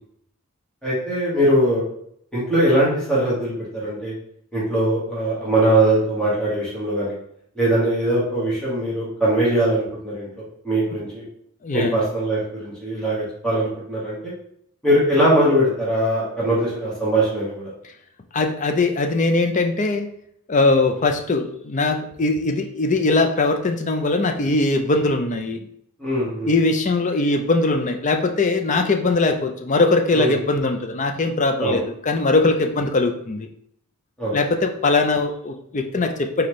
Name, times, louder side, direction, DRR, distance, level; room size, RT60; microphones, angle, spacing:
voice 1, 0.8-1.8 2.3-4.1 4.5-7.2 7.5-10.3 10.6-11.2 11.7-14.3 14.8-17.7 26.0-26.5 30.1-30.3 31.6-31.8 34.2-34.3, right 1 dB, 5° left, -9 dB, 1.6 m, -21 dB
voice 2, 11.6-12.0 18.3-20.1 20.5-25.7 26.4-33.5 34.3-36.5, left 3 dB, 35° left, 6 dB, 0.5 m, -21 dB
4.3 x 3.9 x 3.1 m, 0.68 s
head